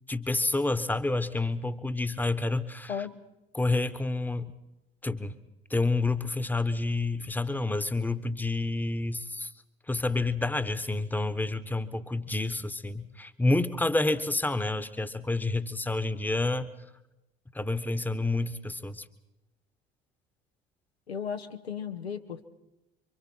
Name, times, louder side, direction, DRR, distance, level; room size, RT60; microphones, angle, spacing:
voice 1, 0.1-3.1 3.5-4.5 5.0-5.3 5.7-9.5 9.9-16.7 17.5-19.0, left 2 dB, 5° left, 13 dB, 1.1 m, -29 dB
voice 2, 2.9-3.2 21.1-22.5, left 7 dB, 85° left, 5 dB, 1.0 m, -35 dB
27.5 x 24.5 x 4.4 m, 0.94 s
figure-of-eight pair, 60°, 31 cm